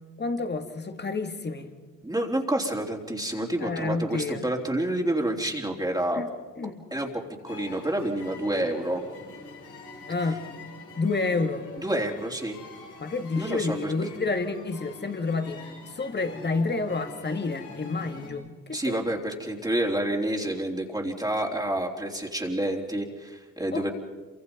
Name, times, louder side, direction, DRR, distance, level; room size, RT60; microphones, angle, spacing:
voice 1, 0.2-1.7 3.6-4.5 6.1-6.3 6.6-6.7 10.1-10.4 11.0-11.7 13.0-19.0 23.7-23.9, left 3 dB, 35° left, 7 dB, 2.4 m, -29 dB
voice 2, 2.0-6.2 6.9-9.0 11.8-12.6 13.3-13.9 18.7-23.9, right 1 dB, 10° right, 0 dB, 3.5 m, -28 dB
sound 1, 7.5-18.3, left 4 dB, 85° left, 7.9 m, -45 dB
27.0 x 25.0 x 5.4 m, 1.4 s
cardioid pair, 75°, 31 cm